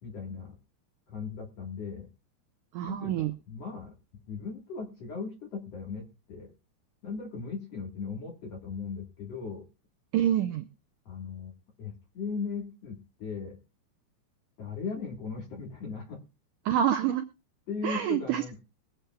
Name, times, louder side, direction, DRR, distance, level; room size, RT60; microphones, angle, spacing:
voice 1, 0.0-0.6 1.1-2.1 2.8-3.9 4.3-6.5 7.0-9.6 11.1-11.5 11.8-13.6 14.6-16.2 17.7-18.6, left 5 dB, 55° left, 1 dB, 2.0 m, -38 dB
voice 2, 2.7-3.3 10.1-10.7 16.7-17.3 17.8-18.4, right 10 dB, 85° right, 7 dB, 1.8 m, -27 dB
22.5 x 8.0 x 2.3 m, 0.30 s
omnidirectional pair, 4.7 m